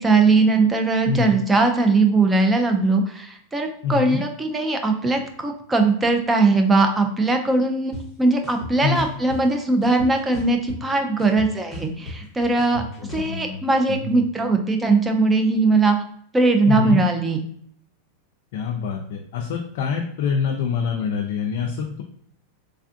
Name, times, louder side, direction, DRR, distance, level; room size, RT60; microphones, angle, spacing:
voice 1, 0.0-7.9 8.2-12.8 13.1-16.0 16.3-17.4, right 3 dB, 10° right, 5 dB, 0.4 m, -20 dB
voice 2, 3.8-4.2 8.8-9.1 12.7-13.6 13.9-14.2 16.7-17.0 18.5-22.0, left 6 dB, 65° left, 1 dB, 0.4 m, -25 dB
sound 1, 7.9-8.0 8.4-9.4 9.8-10.9 11.2-13.3, left 3 dB, 25° left, 0.9 m, -35 dB
3.3 x 2.4 x 2.5 m, 0.65 s
supercardioid pair, 145°, 0 cm